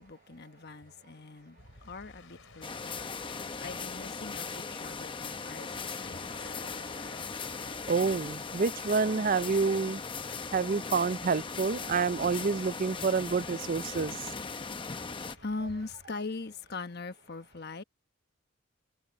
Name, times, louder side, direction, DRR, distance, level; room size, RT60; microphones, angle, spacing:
voice 1, 0.0-3.1 3.4-6.5 14.0-14.1 14.5-17.8, left 3 dB, 50° left, 1.2 m, -42 dB
sound 1, 1.6-16.0, left 4 dB, 75° left, 3.5 m, -55 dB
sound 2, 2.6-15.4, left 4 dB, 25° left, 0.7 m, -39 dB
voice 2, 7.9-10.0 10.5-14.2, right 5 dB, 40° right, 0.4 m, -28 dB
head